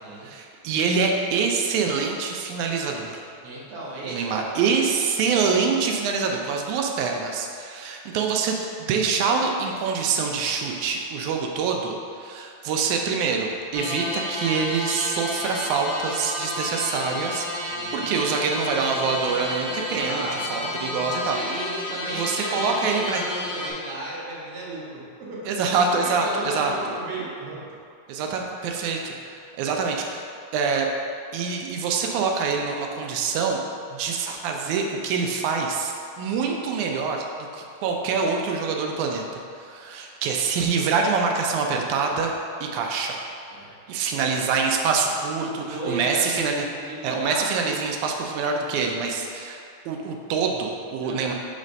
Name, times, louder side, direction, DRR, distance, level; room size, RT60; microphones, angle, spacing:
voice 1, 0.2-3.2 4.0-21.4 22.1-23.2 25.5-26.7 28.1-30.2 30.5-30.9 31.3-33.6 33.9-37.3 37.5-42.3 42.6-43.2 43.9-46.7 47.0-49.6 49.9-51.3, right 5 dB, 90° right, 1 dB, 2.0 m, -25 dB
voice 2, 3.4-4.7 17.6-18.1 19.9-20.5 21.3-27.6 43.5-43.7 44.1-44.5 45.4-47.8 51.0-51.3, right 2 dB, 60° right, -5 dB, 1.9 m, -35 dB
sound 1, 13.7-23.7, left 1 dB, 60° left, 1.3 m, -31 dB
6.2 x 3.3 x 5.2 m, 2.4 s
omnidirectional pair, 3.3 m